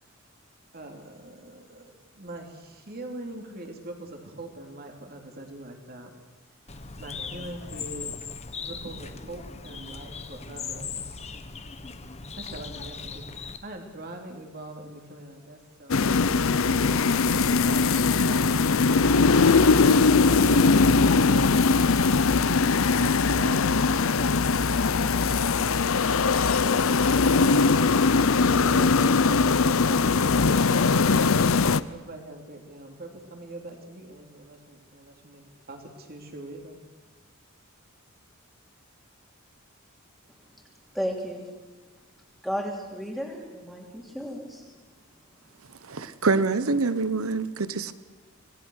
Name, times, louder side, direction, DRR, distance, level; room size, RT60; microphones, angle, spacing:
voice 1, 0.7-6.1 6.7-8.1 8.6-11.3 12.4-16.0 16.4-17.0 17.6-19.8 20.2-22.2 22.9-25.3 26.6-26.9 28.5-31.3 31.9-36.8, right 1 dB, 45° right, 3.2 m, -43 dB
Bird, 6.7-13.6, left 5 dB, 30° left, 1.2 m, -38 dB
sound 1, 15.9-31.8, left 4 dB, 70° left, 0.7 m, -21 dB
voice 2, 40.9-41.5 42.4-44.6, equal, ahead, 3.0 m, -33 dB
voice 3, 45.8-47.9, right 3 dB, 80° right, 1.1 m, -25 dB
26.5 x 19.0 x 6.5 m
head